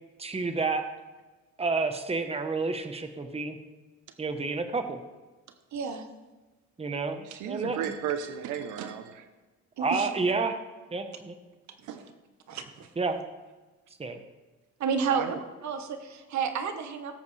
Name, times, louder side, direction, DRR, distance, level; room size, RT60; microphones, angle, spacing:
voice 1, 0.2-0.8 1.6-3.6 4.2-5.0 6.8-7.8 9.8-10.6 10.9-11.4 13.0-13.2 14.0-14.2, right 4 dB, 20° right, 7 dB, 1.1 m, -29 dB
voice 2, 5.7-6.0 9.8-10.1 12.5-12.9 14.8-15.3 15.6-17.2, right 6 dB, 65° right, 7 dB, 1.4 m, -31 dB
voice 3, 7.2-9.3 11.9-12.0 15.1-15.4, right 8 dB, 90° right, 8 dB, 0.9 m, -34 dB
17.0 x 8.1 x 3.3 m, 1.2 s
cardioid pair, 90°, 30 cm